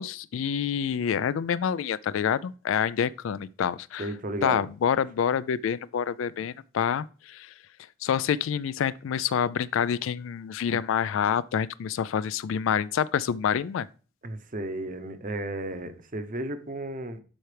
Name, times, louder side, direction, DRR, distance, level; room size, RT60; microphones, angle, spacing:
voice 1, 0.0-4.1 4.4-7.5 8.0-13.9, left 8 dB, 70° left, 0.3 m, -27 dB
voice 2, 4.0-4.6 14.2-17.2, right 1 dB, 40° right, 0.8 m, -34 dB
11.5 x 4.4 x 3.3 m
head